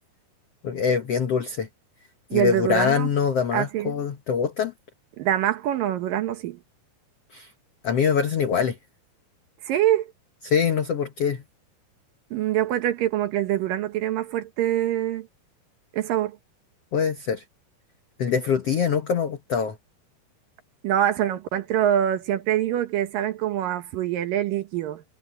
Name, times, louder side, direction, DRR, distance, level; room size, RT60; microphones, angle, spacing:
voice 1, 0.6-1.7 2.3-4.7 7.3-7.5 7.8-8.8 10.4-11.4 16.9-17.4 18.2-19.8, left 7 dB, 75° left, 1.4 m, -24 dB
voice 2, 2.3-3.1 3.5-3.9 5.2-6.6 9.6-10.1 12.3-15.3 15.9-16.4 20.8-25.0, right 11 dB, 70° right, 2.5 m, -24 dB
omnidirectional pair, 4.7 m